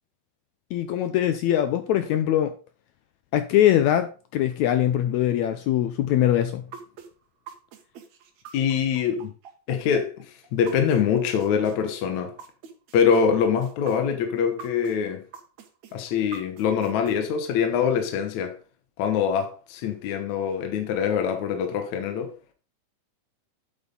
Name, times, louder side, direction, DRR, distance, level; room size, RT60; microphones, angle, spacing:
voice 1, 0.7-2.5 3.3-6.6, left 11 dB, 85° left, 1.6 m, -22 dB
sound 1, 6.7-11.0 11.4-15.0 15.3-17.1, right 6 dB, 60° right, 2.4 m, -43 dB
voice 2, 8.5-9.3 9.7-12.3 12.9-15.2 15.9-18.6 19.0-22.3, left 7 dB, 65° left, 2.2 m, -24 dB
9.0 x 8.1 x 3.8 m
omnidirectional pair, 4.0 m